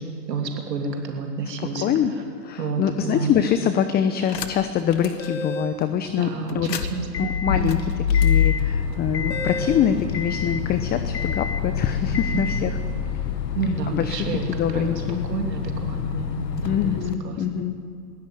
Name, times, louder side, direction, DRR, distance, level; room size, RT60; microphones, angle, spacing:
voice 1, 0.3-1.9 2.6-3.3 6.2-7.7 12.3-12.9 13.5-15.0 15.3-16.3 16.6-17.4, right 4 dB, 75° right, 3 dB, 3.1 m, -30 dB
voice 2, 1.8-2.1 2.4-6.7 7.2-7.8 8.1-12.8 13.9-14.2 14.5-15.2 16.6-17.8, left 9 dB, 20° left, 10 dB, 0.8 m, -24 dB
sound 1, 4.3-4.8 5.2-5.3 6.5-17.1, left 7 dB, 75° left, 1.7 m, -26 dB
sound 2, 4.9-5.8 8.1-8.3 9.3-9.9, right 1 dB, 50° left, 3.2 m, -32 dB
21.5 x 16.5 x 9.0 m, 2.3 s
hypercardioid pair, 115°, 49 cm